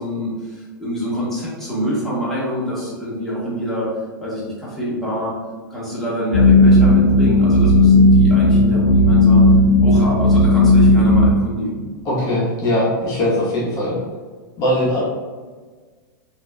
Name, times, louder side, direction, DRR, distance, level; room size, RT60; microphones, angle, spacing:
voice 1, 0.0-3.9 4.2-5.3 5.7-9.4 9.8-11.9, equal, ahead, -9 dB, 1.3 m, -25 dB
sound 1, 6.3-11.3, left 1 dB, 75° left, 0.4 m, -13 dB
voice 2, 12.0-14.0 14.6-15.0, left 1 dB, 35° left, -7 dB, 0.9 m, -20 dB
3.9 x 2.6 x 2.2 m, 1.4 s
hypercardioid pair, 110°, 11 cm